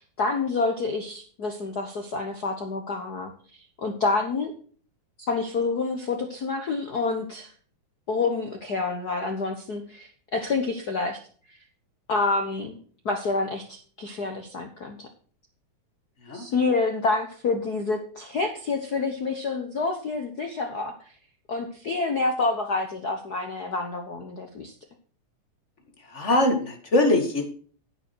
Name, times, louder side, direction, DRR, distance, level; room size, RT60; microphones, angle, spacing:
voice 1, 0.0-4.5 5.2-7.5 8.1-11.2 11.5-11.6 12.1-12.8 13.0-15.1 16.3-21.1 21.5-24.7, left 3 dB, 60° left, 5 dB, 1.0 m, -28 dB
voice 2, 26.0-27.4, left 1 dB, 25° left, 4 dB, 1.9 m, -22 dB
9.8 x 9.4 x 4.6 m, 0.43 s
omnidirectional pair, 3.4 m